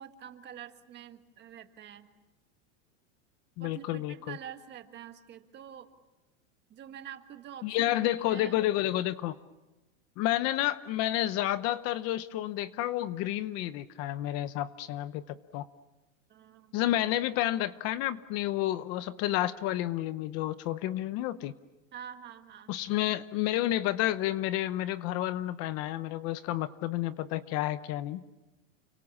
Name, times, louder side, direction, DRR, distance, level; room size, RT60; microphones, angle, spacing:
voice 1, 0.0-2.1 3.6-5.9 6.7-8.0 8.2-8.6 16.3-16.8 21.9-22.7, right 9 dB, 25° right, 7 dB, 1.7 m, -46 dB
voice 2, 3.6-4.4 7.6-9.4 10.2-15.7 16.7-21.5 22.7-28.2, left 14 dB, 40° left, 14 dB, 0.8 m, -30 dB
30.0 x 24.0 x 7.3 m, 1.0 s
supercardioid pair, 160°, 39 cm